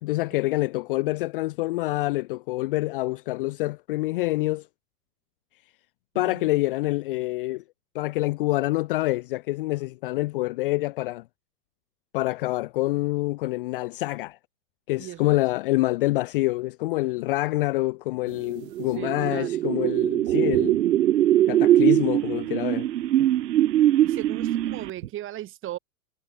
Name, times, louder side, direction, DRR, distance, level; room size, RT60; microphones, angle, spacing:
voice 1, 0.0-4.6 6.2-7.6 7.9-11.2 12.1-14.4 14.9-20.8 21.5-22.9, left 20 dB, 40° left, 0.4 m, -26 dB
voice 2, 6.1-6.5 15.0-15.4 19.0-19.6 24.0-25.8, right 13 dB, 25° right, 1.6 m, -37 dB
sound 1, 18.6-25.1, right 12 dB, 90° right, 0.6 m, -22 dB
hypercardioid pair, 110°, 47 cm